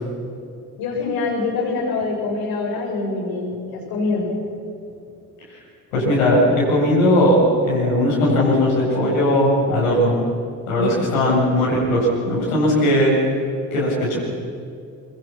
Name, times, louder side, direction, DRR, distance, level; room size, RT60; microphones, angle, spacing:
voice 1, 0.8-4.3 10.8-10.9, left 3 dB, 55° left, -2 dB, 7.2 m, -24 dB
voice 2, 5.9-10.2 10.7-13.2 13.7-14.2, left 1 dB, 70° left, -5 dB, 7.9 m, -18 dB
25.5 x 24.0 x 6.1 m, 2.5 s
figure-of-eight pair, 50°, 43 cm